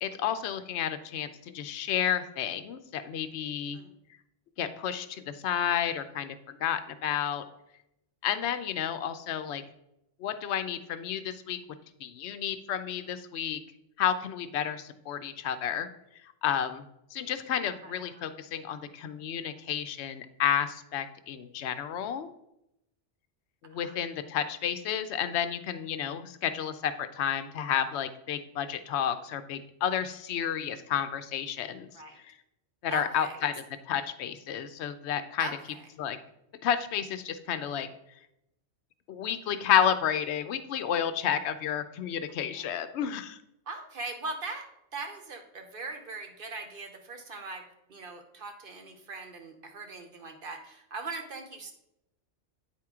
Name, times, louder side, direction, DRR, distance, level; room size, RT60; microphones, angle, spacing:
voice 1, 0.0-3.8 4.6-7.4 8.2-9.6 10.2-11.6 12.0-13.6 14.0-15.9 16.2-16.8 17.1-22.3 23.6-31.9 32.2-32.3 32.8-35.5 36.0-36.2 36.6-37.9 39.1-43.4, left 9 dB, 70° left, 11 dB, 0.8 m, -31 dB
voice 2, 32.9-33.4 35.4-35.8 42.6-42.7 43.7-44.7 44.9-51.7, right 3 dB, 50° right, 5 dB, 0.9 m, -40 dB
8.7 x 4.4 x 3.6 m, 0.84 s
omnidirectional pair, 1.2 m